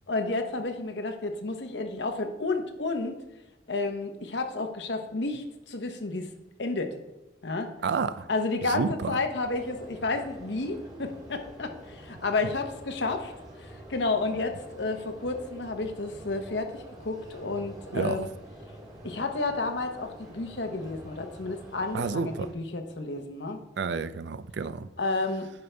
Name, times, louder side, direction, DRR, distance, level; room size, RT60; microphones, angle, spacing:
voice 1, 0.1-3.2 3.7-6.3 6.6-7.0 7.4-7.7 8.3-13.3 13.6-18.3 19.0-23.6 25.0-25.5, left 3 dB, 70° left, 0.9 m, -31 dB
voice 2, 7.8-8.3 8.7-9.2 17.9-18.3 21.9-22.5 23.8-24.9, right 5 dB, 70° right, 0.4 m, -30 dB
sound 1, 9.4-22.5, equal, 20° right, 1.6 m, -47 dB
10.5 x 5.3 x 3.4 m
head